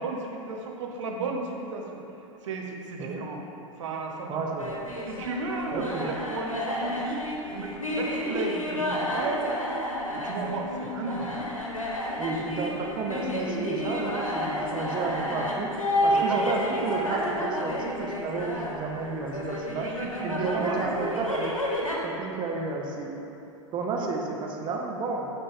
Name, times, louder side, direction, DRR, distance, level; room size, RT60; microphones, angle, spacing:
voice 1, 0.0-2.0 2.4-3.4 3.8-4.4 5.1-9.7 10.1-11.5 16.1-16.4 19.8-20.9 23.9-24.1, right 3 dB, 65° right, 1 dB, 1.0 m, -34 dB
voice 2, 4.3-4.8 5.7-6.1 12.2-15.7 16.0-19.9 20.2-21.6 22.0-23.2 23.7-25.3, right 4 dB, 30° right, 1 dB, 0.7 m, -31 dB
sound 1, 4.6-22.0, left 1 dB, 85° left, 1.0 m, -31 dB
8.9 x 4.2 x 3.5 m, 2.8 s
figure-of-eight pair, 95°, 17 cm